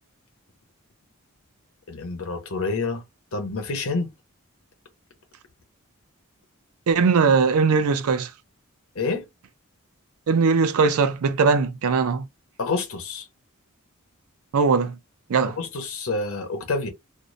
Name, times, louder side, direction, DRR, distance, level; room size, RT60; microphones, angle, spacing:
voice 1, 1.9-3.0 3.3-4.1 8.9-9.3 12.6-13.2 15.4-16.9, left 3 dB, 70° left, 0.9 m, -28 dB
voice 2, 6.9-8.3 10.3-12.3 14.5-15.0 15.3-15.6, right 5 dB, 85° right, 0.4 m, -20 dB
2.6 x 2.0 x 2.6 m
head